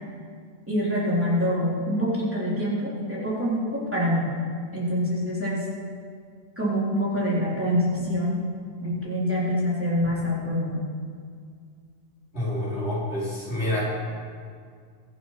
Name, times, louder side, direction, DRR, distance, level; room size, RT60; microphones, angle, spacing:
voice 1, 0.7-4.3 4.7-5.6 6.6-8.4 8.8-10.8, equal, 10° right, -7 dB, 3.6 m, -25 dB
voice 2, 12.3-13.8, left 1 dB, 70° left, -8 dB, 5.0 m, -28 dB
23.0 x 7.7 x 5.8 m, 2.1 s
omnidirectional pair, 1.1 m